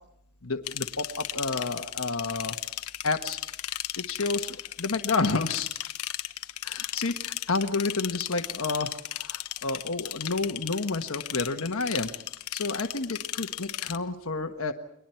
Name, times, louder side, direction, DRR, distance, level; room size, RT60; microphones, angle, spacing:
voice 1, 0.4-2.6 3.0-3.4 4.0-5.7 6.6-12.1 12.5-14.7, left 3 dB, 65° left, 5 dB, 1.4 m, -30 dB
sound 1, 0.7-14.0, left 13 dB, 90° left, 1.0 m, -36 dB
30.0 x 23.0 x 4.5 m, 0.74 s
head